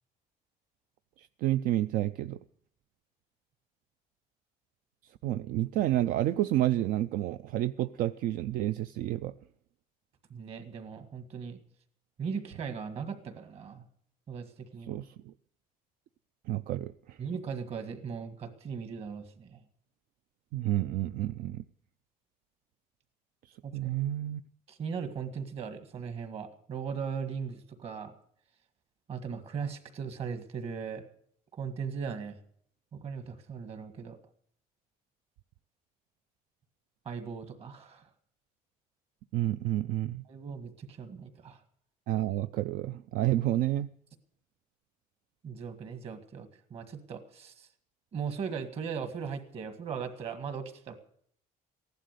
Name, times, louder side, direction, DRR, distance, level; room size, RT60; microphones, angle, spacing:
voice 1, 1.2-2.4 5.2-9.3 14.9-15.3 16.5-17.2 20.5-21.6 23.7-24.4 39.3-40.2 42.1-43.9, right 14 dB, 70° right, 0.5 m, -30 dB
voice 2, 10.3-11.6 12.2-13.8 14.3-15.0 17.2-19.6 23.6-23.9 24.7-28.1 29.1-31.0 31.5-32.4 32.9-34.2 37.1-38.1 40.3-41.6 45.4-47.7 48.1-50.9, right 6 dB, 40° right, 1.8 m, -38 dB
15.5 x 11.5 x 6.7 m
cardioid pair, 160°, 15 cm